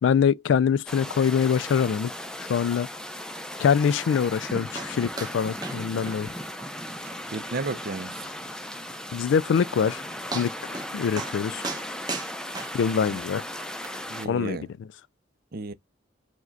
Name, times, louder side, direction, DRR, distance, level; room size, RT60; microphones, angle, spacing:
voice 1, 0.0-2.1 2.4-2.9 3.6-6.3 9.1-10.0 10.3-11.6 12.7-13.4 14.2-14.6, left 7 dB, 75° left, 0.3 m, -24 dB
sound 1, 0.9-14.3, left 1 dB, 5° left, 0.5 m, -37 dB
sound 2, 4.7-4.9 5.2-5.4 5.6-5.8 6.1-6.2 6.6-6.7 7.1-7.2 7.6-7.7 9.4-9.5 9.9-10.0 10.3-10.9 11.2-11.4 11.6-13.1 13.8-13.9, right 3 dB, 20° right, 1.0 m, -35 dB
voice 2, 7.3-8.3 13.1-13.2 14.1-14.7 15.5-15.7, right 3 dB, 50° right, 0.5 m, -33 dB
4.9 x 2.1 x 3.9 m
head